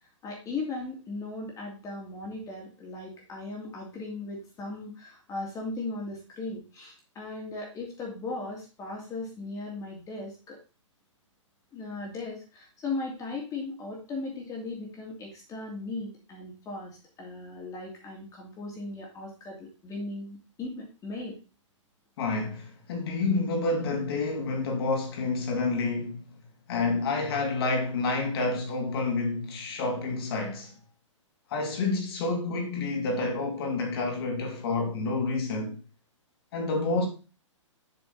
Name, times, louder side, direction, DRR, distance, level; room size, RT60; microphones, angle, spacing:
voice 1, 0.2-10.6 11.7-16.9 17.2-21.4, left 3 dB, 20° left, 2.6 m, -37 dB
voice 2, 22.2-26.3 26.7-30.7 31.5-35.8 36.5-37.1, left 3 dB, 50° left, 2.7 m, -29 dB
7.9 x 5.9 x 4.0 m
figure-of-eight pair, 120°, 16 cm